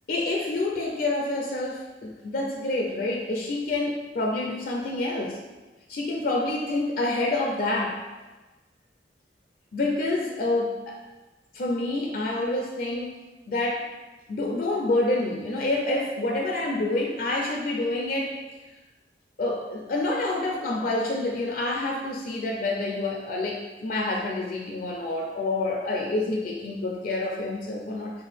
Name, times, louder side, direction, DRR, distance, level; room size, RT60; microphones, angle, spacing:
voice 1, 0.1-5.4 5.9-8.0 9.7-11.0 11.5-13.1 13.5-13.9 14.3-18.4 19.4-28.1, left 2 dB, 50° left, 0 dB, 0.4 m, -27 dB
4.4 x 2.2 x 3.4 m, 1.2 s
head